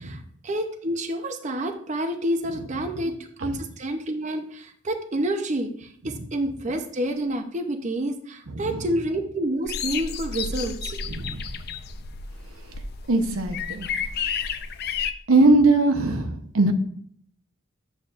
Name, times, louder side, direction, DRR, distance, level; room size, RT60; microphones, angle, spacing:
voice 1, 0.0-11.1, right 1 dB, 35° right, 6 dB, 0.6 m, -29 dB
voice 2, 8.5-8.9 11.1-11.4 13.1-13.9 15.3-16.7, right 2 dB, 85° right, 6 dB, 0.9 m, -21 dB
sound 1, 9.7-15.1, left 6 dB, 50° left, 0.5 m, -31 dB
9.3 x 7.3 x 2.5 m, 0.65 s
head